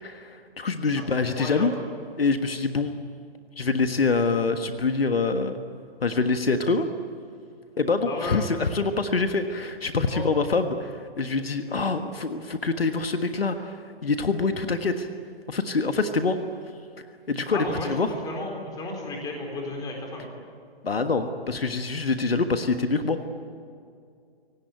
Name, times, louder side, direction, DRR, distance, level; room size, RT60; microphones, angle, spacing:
voice 1, 0.0-1.7 2.2-2.9 3.6-5.6 6.0-6.9 7.8-15.1 15.5-16.4 17.0-18.1 20.8-23.2, left 4 dB, 70° left, 8 dB, 1.6 m, -25 dB
voice 2, 0.8-1.7 8.0-8.5 10.1-10.2 17.5-20.3, left 2 dB, 10° left, 1 dB, 4.2 m, -34 dB
25.0 x 18.0 x 9.2 m, 2.4 s
figure-of-eight pair, 130°, 31 cm